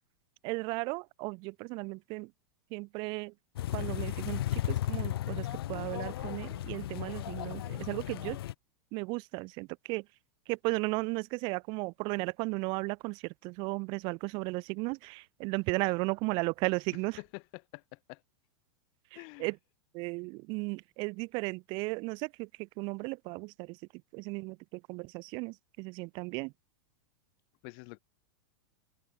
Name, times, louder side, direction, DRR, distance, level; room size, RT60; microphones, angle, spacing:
voice 1, 0.4-2.3 2.7-3.3 3.7-8.4 8.9-10.0 10.5-17.2 19.4-19.6 19.9-23.8 24.1-26.5, right 27 dB, 40° right, 1.2 m, -35 dB
sound 1, 3.6-8.5, left 13 dB, 85° left, 0.5 m, -35 dB
voice 2, 17.2-18.2 19.1-19.5 27.6-28.0, left 40 dB or more, 45° left, 5.8 m, -47 dB
supercardioid pair, 150°, 12 cm